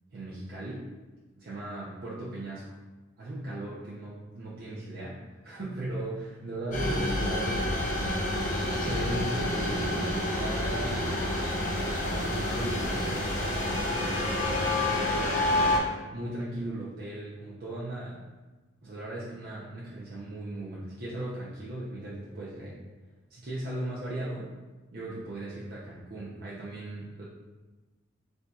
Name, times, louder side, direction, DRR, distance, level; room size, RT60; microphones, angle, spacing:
voice 1, 0.1-0.9 1.4-2.8 3.2-8.2 8.7-11.2 12.0-15.8 16.1-18.2 18.8-22.8 23.3-24.5 24.9-27.2, right 1 dB, 50° right, -7 dB, 0.7 m, -38 dB
sound 1, 6.7-15.8, left 1 dB, 45° left, 0.9 m, -28 dB
sound 2, 8.3-13.1, equal, 5° right, 1.1 m, -41 dB
6.8 x 2.7 x 2.4 m, 1.2 s
head